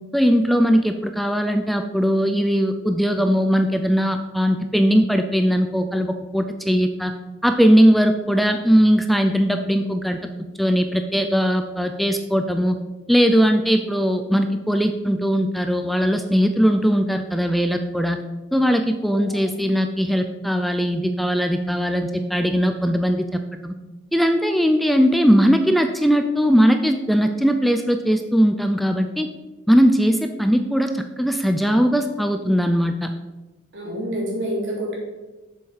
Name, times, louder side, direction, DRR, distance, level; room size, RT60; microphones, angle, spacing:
voice 1, 0.1-7.1 7.4-10.2 10.6-12.8 13.1-18.2 18.5-23.7 24.1-29.3 29.7-33.1, equal, ahead, 6 dB, 0.4 m, -19 dB
voice 2, 33.7-34.9, equal, 80° right, -3 dB, 3.3 m, -28 dB
7.5 x 7.1 x 4.9 m, 1.1 s
head